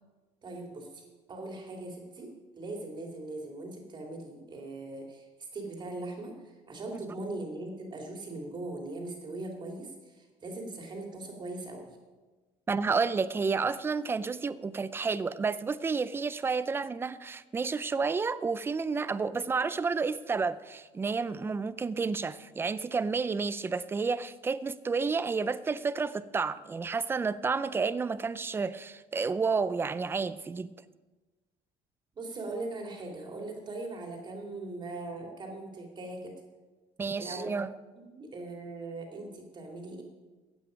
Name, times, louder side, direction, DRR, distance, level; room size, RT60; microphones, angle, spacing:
voice 1, 0.4-5.2 5.5-12.0 32.1-36.4 37.2-37.5 38.0-40.0, right 2 dB, 30° right, 2.8 m, -40 dB
voice 2, 12.7-30.7 37.0-37.7, right 4 dB, 15° right, 0.4 m, -30 dB
15.5 x 9.0 x 5.2 m
cardioid pair, 135°, 14 cm